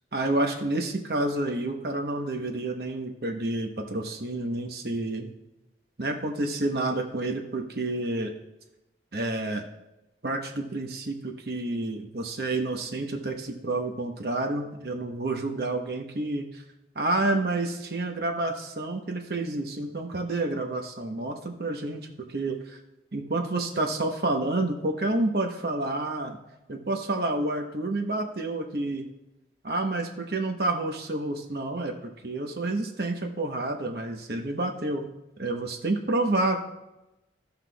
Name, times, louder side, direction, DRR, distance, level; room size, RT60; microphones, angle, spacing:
voice 1, 0.1-5.3 6.0-8.3 9.1-9.6 10.2-16.6 16.9-22.8 23.1-26.4 26.7-29.1 29.6-31.9 32.2-35.1 35.4-36.6, right 2 dB, 60° right, 3 dB, 1.0 m, -29 dB
16.0 x 5.8 x 2.3 m, 0.96 s
head